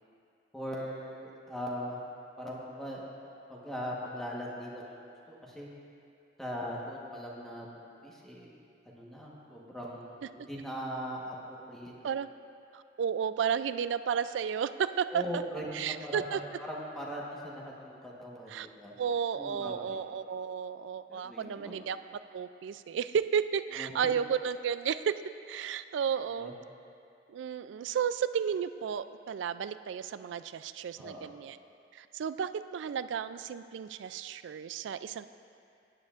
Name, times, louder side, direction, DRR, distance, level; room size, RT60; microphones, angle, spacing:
voice 1, 0.5-2.0 2.4-3.0 3.5-5.7 6.4-8.6 8.9-11.9 15.1-18.9 19.3-20.0 21.1-21.8 23.7-24.1 26.4-26.5 31.0-31.3, equal, ahead, -5 dB, 1.2 m, -40 dB
voice 2, 12.7-15.4 15.7-16.4 18.5-18.7 19.0-22.0 22.3-25.2 25.5-26.5 27.3-31.6 31.9-35.3, right 7 dB, 70° right, 13 dB, 0.3 m, -33 dB
16.0 x 9.7 x 2.5 m, 2.6 s
head